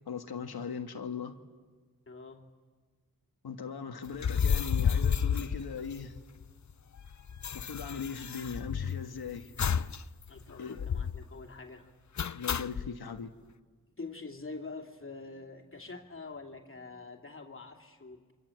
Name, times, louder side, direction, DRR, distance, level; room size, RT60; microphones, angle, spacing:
voice 1, 0.1-1.4 3.4-6.2 7.5-9.5 10.6-10.9 12.3-13.3, left 6 dB, 75° left, 6 dB, 1.6 m, -39 dB
voice 2, 2.1-2.5 10.3-11.9 14.0-18.3, left 3 dB, 35° left, 1 dB, 2.8 m, -45 dB
sound 1, 4.1-6.4 6.7-6.8 7.0-9.1 9.6-10.0 10.3-10.4 10.8-11.3 12.2-12.9, left 7 dB, 50° left, 0.7 m, -31 dB
28.0 x 25.5 x 7.8 m, 1.4 s
cardioid pair, 50°, 37 cm